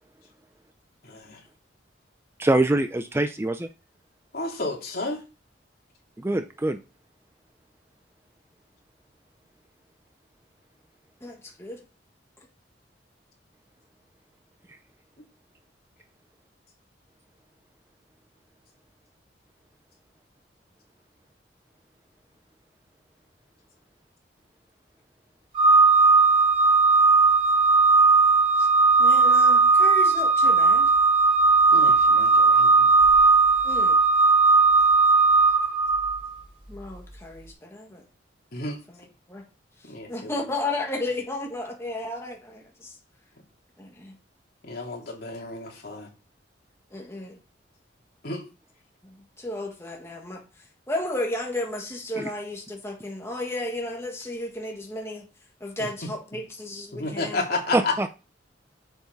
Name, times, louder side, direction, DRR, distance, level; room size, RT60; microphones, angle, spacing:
voice 1, 1.0-1.4 4.3-5.2 31.7-33.0 38.5-38.8 39.9-40.3 44.6-46.1 48.2-48.5 55.8-56.1 56.9-58.0, left 2 dB, 55° left, -1 dB, 3.0 m, -32 dB
voice 2, 2.4-3.7 6.2-6.8 52.2-52.3 57.7-58.1, right 2 dB, 15° right, 8 dB, 0.4 m, -24 dB
voice 3, 11.2-11.8 28.6-28.7 29.0-30.9 33.6-34.0 36.7-38.0 39.3-39.4 40.1-42.9 43.8-44.2 46.9-47.4 49.0-50.4 50.9-55.2 55.6-57.4, left 2 dB, 15° left, 0 dB, 1.7 m, -33 dB
Organ, 25.5-36.3, right 4 dB, 30° right, 2.6 m, -18 dB
7.8 x 7.3 x 4.1 m, 0.31 s
head